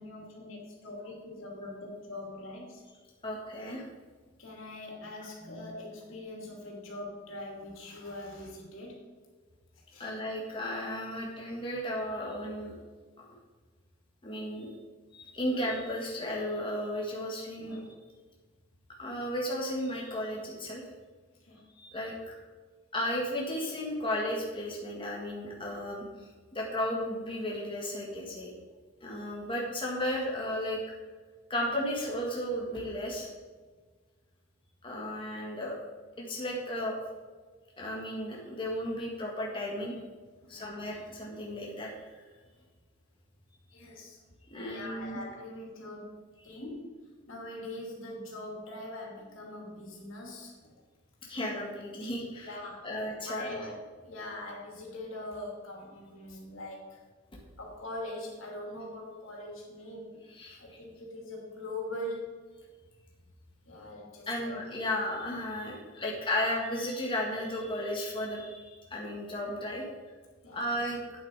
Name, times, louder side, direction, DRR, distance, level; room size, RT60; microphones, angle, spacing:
voice 1, 0.0-2.8 4.4-9.0 9.9-10.1 17.6-17.8 21.4-21.6 40.4-40.7 43.7-44.2 44.7-46.2 46.4-47.0 47.3-50.7 52.4-57.0 57.6-60.2 60.6-62.4 63.7-64.6 70.4-70.7, left 1 dB, 80° left, -2 dB, 2.8 m, -42 dB
voice 2, 3.2-3.8 10.0-12.7 14.2-14.7 15.1-17.9 19.0-20.8 21.8-22.3 22.9-26.0 26.5-28.5 29.0-30.8 31.5-33.3 34.8-35.8 36.2-37.0 37.8-39.9 40.5-41.9 44.5-45.2 46.5-46.6 51.2-52.5 52.8-53.7 60.3-60.6 64.3-69.8 70.5-71.0, left 1 dB, 25° left, -3 dB, 1.7 m, -34 dB
9.2 x 7.5 x 4.8 m, 1.4 s
head